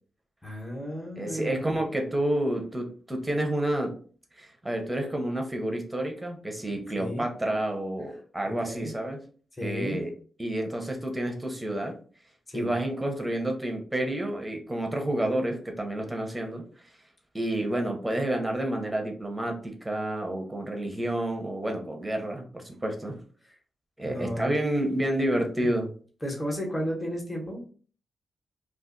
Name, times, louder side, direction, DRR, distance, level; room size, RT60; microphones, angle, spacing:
voice 1, 0.4-1.7 7.0-7.3 8.4-8.9 9.6-10.0 12.5-12.7 24.0-24.5 25.6-25.7 26.2-27.7, equal, 15° left, -1 dB, 1.0 m, -33 dB
voice 2, 1.2-4.0 4.4-9.2 9.6-10.1 10.4-12.0 12.5-16.6 17.3-23.2 24.0-25.9, right 1 dB, 10° right, 2 dB, 0.7 m, -29 dB
2.4 x 2.4 x 3.7 m, 0.42 s
wide cardioid pair, 120°, 0 cm